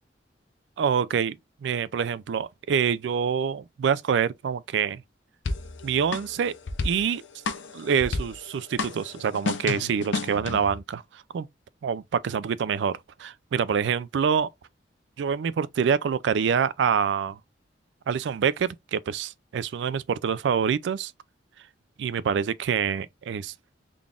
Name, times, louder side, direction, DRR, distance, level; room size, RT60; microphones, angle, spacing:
voice 1, 0.8-5.0 5.8-6.5 6.8-7.2 7.7-11.5 11.8-14.5 15.2-17.4 18.1-21.1 22.0-23.5, right 7 dB, 70° right, 0.3 m, -26 dB
sound 1, 5.4-10.8, left 3 dB, 75° left, 0.6 m, -32 dB
3.8 x 2.4 x 3.4 m
head